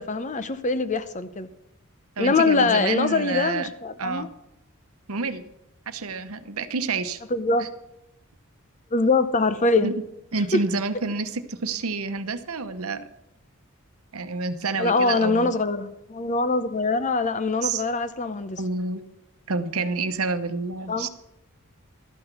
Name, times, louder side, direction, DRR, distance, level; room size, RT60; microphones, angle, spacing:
voice 1, 0.0-1.5 2.2-4.3 7.3-7.7 8.9-9.9 10.5-10.6 14.8-18.6 20.9-21.1, left 3 dB, 35° left, 0.7 m, -23 dB
voice 2, 2.2-3.7 4.0-4.3 5.1-5.4 5.9-7.2 7.6-7.7 9.8-9.9 10.3-13.1 14.1-15.5 17.6-17.8 18.6-19.0 19.5-21.1, right 3 dB, 90° right, 0.9 m, -28 dB
13.0 x 6.0 x 8.1 m
head